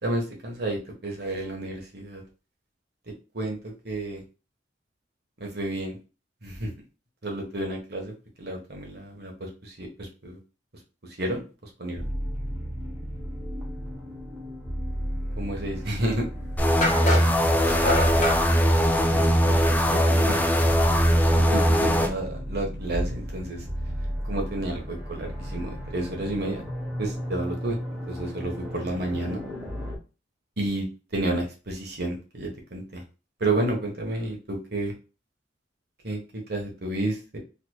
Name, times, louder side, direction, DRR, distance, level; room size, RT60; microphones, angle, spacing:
voice 1, 0.0-2.2 3.3-4.2 5.4-6.0 6.4-6.7 7.2-10.4 11.2-11.4 11.8-12.1 15.4-16.3 19.1-20.7 21.4-23.6 24.2-26.6 27.0-27.8 28.1-29.4 30.6-30.9 31.1-33.0 33.4-34.9 36.0-37.4, right 1 dB, 60° right, 1 dB, 1.3 m, -31 dB
sound 1, 12.0-30.0, equal, 5° right, 1.3 m, -34 dB
sound 2, 16.0-16.1 16.8-18.4, left 1 dB, 40° left, 1.2 m, -26 dB
sound 3, 16.6-22.1, equal, 10° left, 0.4 m, -21 dB
4.0 x 3.1 x 2.3 m, 0.32 s
head